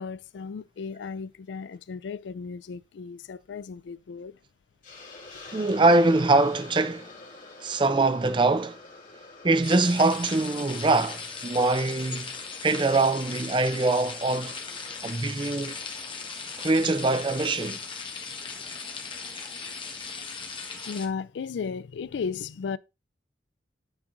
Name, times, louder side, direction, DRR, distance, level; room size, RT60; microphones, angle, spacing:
voice 1, 0.0-4.4 20.9-22.8, left 5 dB, 80° left, 0.4 m, -35 dB
Hiss, 4.8-17.4, left 3 dB, 50° left, 2.9 m, -49 dB
voice 2, 5.5-7.1 7.6-8.8 9.4-12.3 12.6-14.6 15.0-15.8 16.6-17.8, right 2 dB, 25° right, 0.5 m, -23 dB
sound 1, 9.6-21.1, left 5 dB, 30° left, 1.2 m, -38 dB
8.8 x 3.8 x 3.8 m
head